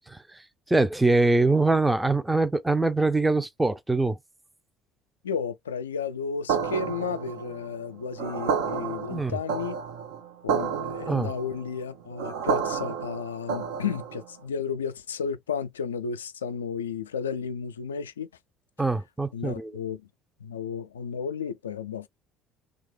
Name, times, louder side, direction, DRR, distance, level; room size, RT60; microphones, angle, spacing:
voice 1, 0.7-4.2 9.1-9.4 11.1-11.3 18.8-19.8, right 3 dB, 10° right, 0.5 m, -23 dB
voice 2, 5.2-9.8 10.4-18.3 19.3-20.1 20.4-22.1, left 6 dB, 85° left, 0.3 m, -33 dB
sound 1, 6.5-14.3, right 6 dB, 70° right, 0.7 m, -31 dB
3.2 x 2.3 x 3.1 m
hypercardioid pair, 60°, 0 cm